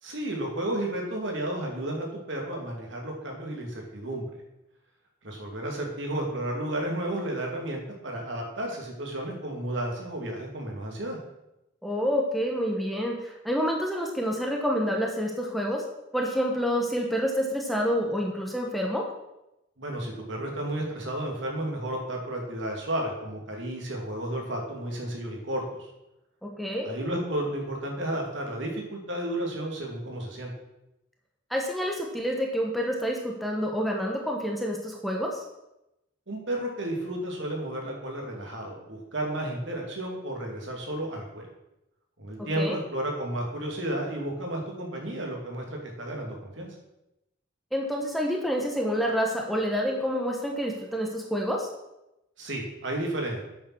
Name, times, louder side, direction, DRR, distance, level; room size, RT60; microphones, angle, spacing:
voice 1, 0.0-4.2 5.2-11.2 19.8-25.9 26.8-30.5 36.3-41.5 42.2-46.7 52.4-53.4, right 1 dB, 65° right, 0 dB, 2.5 m, -32 dB
voice 2, 11.8-15.8 16.1-19.0 26.4-26.9 31.5-35.4 42.5-42.8 47.7-51.7, equal, ahead, 0 dB, 1.2 m, -28 dB
8.7 x 6.9 x 6.2 m, 0.90 s
head